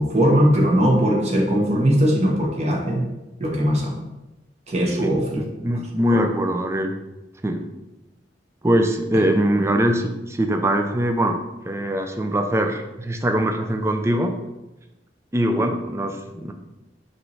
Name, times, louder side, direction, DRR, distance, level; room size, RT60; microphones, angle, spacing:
voice 1, 0.0-3.0 3.4-4.0 4.7-5.5 6.1-6.2, equal, 40° right, 0 dB, 1.1 m, -19 dB
voice 2, 5.0-6.9 7.4-7.6 8.6-11.4 11.7-14.3 15.3-16.5, right 1 dB, 15° right, 5 dB, 0.5 m, -22 dB
5.4 x 3.2 x 5.6 m, 1.0 s
head